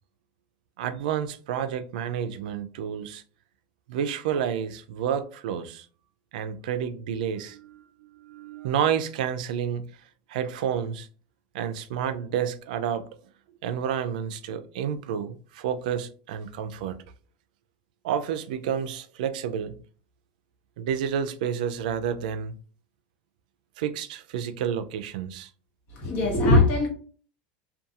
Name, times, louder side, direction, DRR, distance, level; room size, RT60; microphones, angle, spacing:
voice 1, 0.8-3.2 3.9-5.9 6.3-9.9 10.3-11.1 11.5-13.1 13.6-17.0 18.0-19.8 20.8-22.5 23.8-25.5, right 8 dB, 90° right, 0.3 m, -30 dB
voice 2, 25.9-26.9, left 2 dB, 40° left, 1.0 m, -20 dB
2.7 x 2.2 x 2.4 m
supercardioid pair, 165°, 4 cm